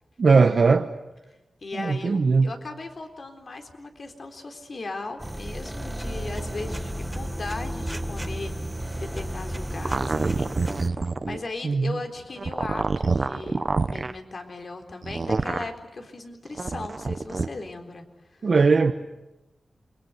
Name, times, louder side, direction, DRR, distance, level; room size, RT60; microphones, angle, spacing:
voice 1, 0.2-0.9 1.8-2.5 11.6-12.0 18.4-18.9, right 4 dB, 65° right, 1.2 m, -19 dB
voice 2, 1.6-10.8 11.2-13.6 13.9-18.5, left 3 dB, 60° left, 3.8 m, -38 dB
sound 1, 5.2-10.9, right 1 dB, 10° right, 1.7 m, -32 dB
sound 2, 9.9-11.4 12.4-14.1 15.0-15.7 16.5-17.5, right 3 dB, 50° right, 1.2 m, -26 dB
28.5 x 23.0 x 8.1 m
cardioid pair, 70°, 0 cm